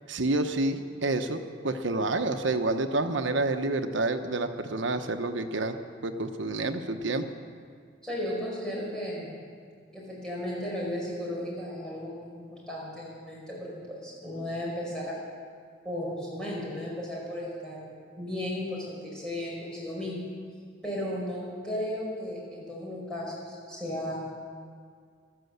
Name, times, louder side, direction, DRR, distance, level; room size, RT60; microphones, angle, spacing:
voice 1, 0.1-5.8 6.0-7.2, right 2 dB, 80° right, 7 dB, 1.0 m, -28 dB
voice 2, 8.0-9.3 9.9-15.2 15.8-17.9 18.1-20.3 20.8-24.2, left 1 dB, 5° left, -6 dB, 5.3 m, -35 dB
14.0 x 13.0 x 8.0 m, 2.1 s
head